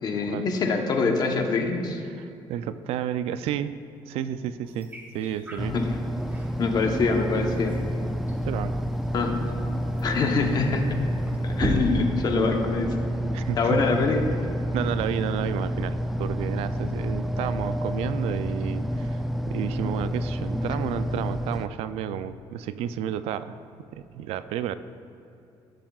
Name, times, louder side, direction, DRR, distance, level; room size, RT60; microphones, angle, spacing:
voice 1, 0.0-2.0 5.7-5.8 6.6-7.8 9.1-9.5 10.0-11.0 11.4-13.0 13.6-14.3, left 4 dB, 40° left, 3 dB, 0.9 m, -25 dB
voice 2, 2.2-3.7 4.1-5.8 8.5-8.8 13.3-13.8 14.7-23.6 23.9-24.8, right 10 dB, 85° right, 13 dB, 0.4 m, -31 dB
sound 1, 4.6-11.8, right 1 dB, 15° right, 1.0 m, -37 dB
sound 2, 5.6-21.7, equal, ahead, 0.3 m, -29 dB
14.5 x 7.3 x 2.4 m, 2.8 s
cardioid pair, 135°, 10 cm